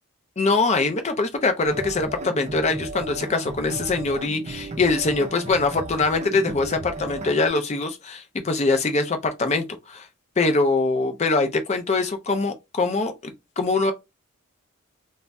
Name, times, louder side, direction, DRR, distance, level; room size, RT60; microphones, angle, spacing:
voice 1, 0.4-10.1 10.4-13.9, left 3 dB, 30° left, 0.5 m, -23 dB
sound 1, 1.6-7.5, right 2 dB, 30° right, 0.5 m, -35 dB
2.6 x 2.0 x 3.3 m
head